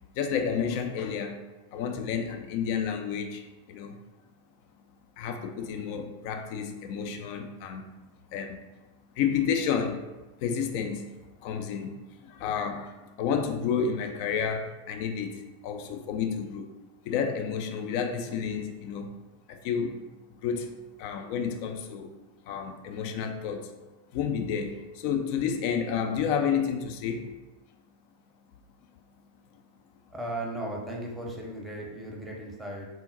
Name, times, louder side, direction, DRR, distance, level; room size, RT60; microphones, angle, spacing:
voice 1, 0.1-4.0 5.2-7.9 8.3-8.6 9.2-10.1 10.4-11.1 11.4-16.7 17.0-19.2 19.5-20.0 20.4-22.1 22.5-23.7 24.1-27.3 29.5-29.6, left 7 dB, 45° left, 5 dB, 0.4 m, -31 dB
voice 2, 30.1-32.9, right 1 dB, 10° right, -1 dB, 0.7 m, -36 dB
3.7 x 2.1 x 3.9 m, 1.1 s
figure-of-eight pair, 90°, 0 cm